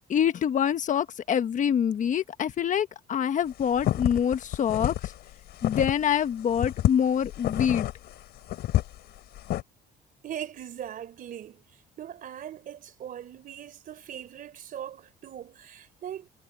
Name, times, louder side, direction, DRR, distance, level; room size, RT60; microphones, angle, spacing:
voice 1, 0.1-5.1 5.6-7.9, left 8 dB, 50° left, 1.3 m, -25 dB
sound 1, 3.5-6.2 6.5-9.6, left 14 dB, 75° left, 4.5 m, -29 dB
voice 2, 10.2-11.6 12.0-16.3, right 10 dB, 55° right, 3.6 m, -40 dB
cardioid pair, 110°, 17 cm